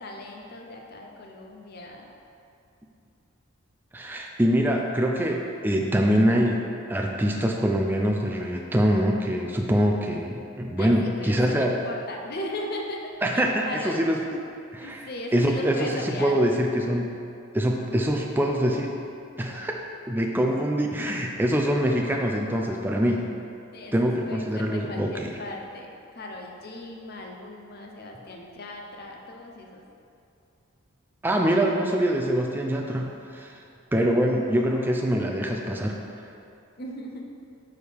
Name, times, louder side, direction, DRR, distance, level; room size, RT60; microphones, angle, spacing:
voice 1, 0.0-2.1 10.8-14.0 14.8-16.4 23.7-23.9 24.2-29.8 36.8-37.2, left 1 dB, 45° left, 1 dB, 0.6 m, -37 dB
voice 2, 3.9-11.7 13.2-14.2 14.7-15.0 15.3-17.1 17.5-18.9 19.4-19.7 20.1-23.3 23.9-25.3 31.2-33.5 33.9-36.0, equal, 10° right, 0 dB, 0.3 m, -24 dB
6.3 x 4.7 x 3.4 m, 2.6 s
head